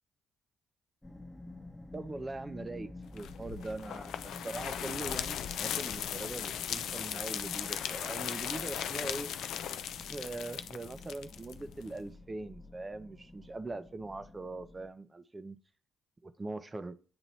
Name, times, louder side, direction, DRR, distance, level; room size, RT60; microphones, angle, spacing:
sound 1, 1.0-14.9, left 2 dB, 15° left, 0.9 m, -51 dB
voice 1, 1.9-9.3 10.1-15.6 16.2-17.0, right 2 dB, 30° right, 12 dB, 0.6 m, -41 dB
sound 2, 3.2-12.0, left 9 dB, 70° left, 0.3 m, -38 dB
Bowed string instrument, 7.8-12.3, right 3 dB, 65° right, 2.8 m, -63 dB
8.7 x 2.9 x 4.2 m, 0.39 s
hypercardioid pair, 45°, 0 cm